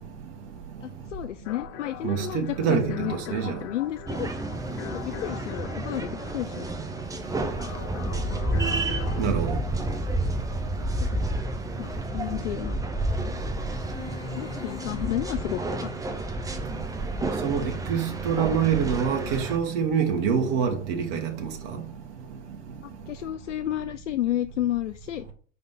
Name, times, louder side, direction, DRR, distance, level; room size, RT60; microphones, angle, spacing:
voice 1, 0.8-4.3 4.9-6.7 8.2-8.7 10.8-11.2 11.8-12.8 14.3-16.2 22.8-25.3, left 13 dB, 75° left, 0.5 m, -32 dB
sound 1, 1.4-9.3, left 11 dB, 45° left, 0.8 m, -42 dB
voice 2, 2.0-3.6 9.2-9.6 17.4-21.8, right 7 dB, 50° right, 1.4 m, -26 dB
sound 2, 4.1-19.6, right 2 dB, 10° right, 0.8 m, -30 dB
sound 3, 13.7-16.4, left 6 dB, 15° left, 0.4 m, -40 dB
5.3 x 4.2 x 5.6 m
hypercardioid pair, 95°, 36 cm